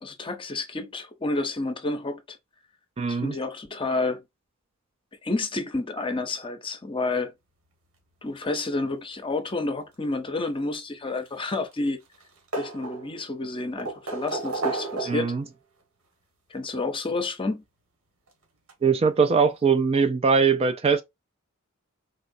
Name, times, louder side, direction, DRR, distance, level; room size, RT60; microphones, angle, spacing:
voice 1, 0.0-2.4 3.1-4.2 5.2-7.3 8.2-12.0 12.5-15.3 16.5-17.6, left 2 dB, 25° left, 0.6 m, -30 dB
voice 2, 3.0-3.4 15.0-15.4 18.8-21.0, right 5 dB, 30° right, 0.3 m, -21 dB
sound 1, 11.2-11.9 12.1-13.3 13.8-15.4 16.6-16.7 18.3-18.4 18.7-18.8, right 3 dB, 90° right, 1.5 m, -32 dB
4.1 x 3.0 x 2.6 m
head